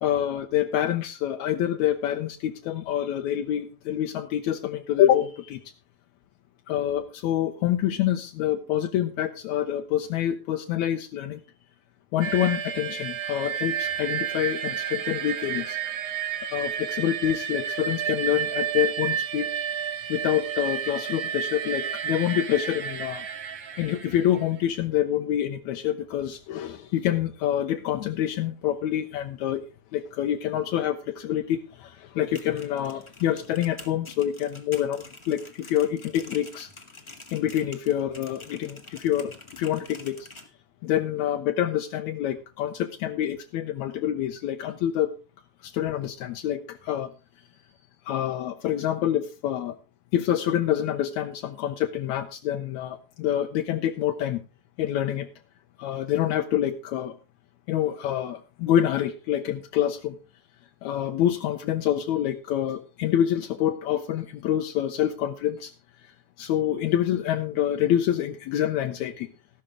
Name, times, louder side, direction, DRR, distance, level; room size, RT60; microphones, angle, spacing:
voice 1, 0.0-5.6 6.7-11.4 12.1-15.8 16.5-19.5 20.1-23.3 23.8-29.6 29.9-36.7 37.3-40.3 40.8-45.1 45.6-47.1 48.1-49.8 50.1-54.4 54.8-55.3 55.8-57.1 57.7-60.2 60.8-65.7 66.4-69.3, left 11 dB, 80° left, 5 dB, 2.1 m, -26 dB
sound 1, 12.2-24.6, right 8 dB, 55° right, 1.4 m, -31 dB
sound 2, 32.1-40.5, left 2 dB, 20° left, 0.8 m, -47 dB
14.0 x 12.0 x 3.6 m, 0.31 s
omnidirectional pair, 3.3 m